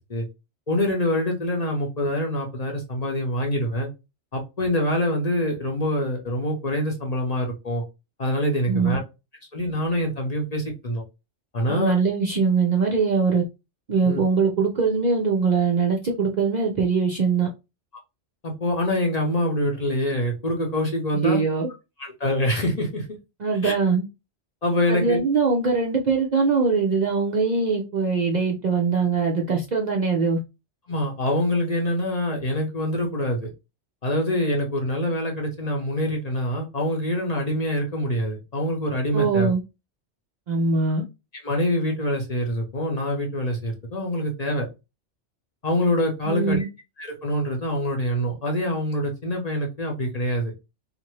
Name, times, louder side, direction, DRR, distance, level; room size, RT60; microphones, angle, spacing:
voice 1, 0.7-3.9 4.3-7.8 8.2-9.0 9.5-11.0 11.5-11.9 14.0-14.2 18.4-21.4 22.0-23.1 23.6-23.8 24.6-25.2 30.9-33.5 34.0-39.5 41.4-44.7 45.6-46.7 47.0-50.5, left 1 dB, 40° left, 0.7 m, -25 dB
voice 2, 11.7-13.4 13.9-17.5 21.2-21.7 23.4-24.0 24.9-30.4 39.1-39.6 40.5-41.0 46.3-46.7, right 4 dB, 55° right, 0.5 m, -22 dB
2.5 x 2.5 x 3.0 m
omnidirectional pair, 1.2 m